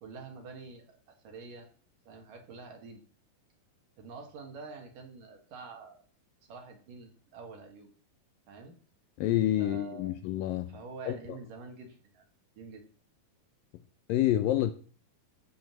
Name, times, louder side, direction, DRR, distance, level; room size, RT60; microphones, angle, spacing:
voice 1, 0.0-1.0 1.2-1.7 2.1-3.0 4.0-6.0 6.5-7.9 8.5-8.8 9.6-10.1 10.7-12.2 12.6-12.8, right 4 dB, 60° right, 3.6 m, -46 dB
voice 2, 9.2-10.8 11.1-11.2 14.1-14.7, left 13 dB, 75° left, 2.2 m, -28 dB
14.5 x 5.3 x 7.5 m
omnidirectional pair, 4.5 m